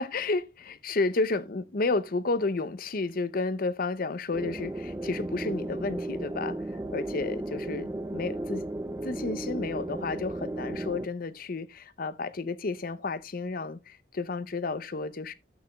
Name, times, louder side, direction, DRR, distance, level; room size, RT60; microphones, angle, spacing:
voice 1, 0.0-6.6 6.9-8.6 9.0-15.3, left 3 dB, 45° left, 0.6 m, -31 dB
sound 1, 4.3-11.1, right 1 dB, 15° right, 0.5 m, -34 dB
12.5 x 8.3 x 2.3 m
head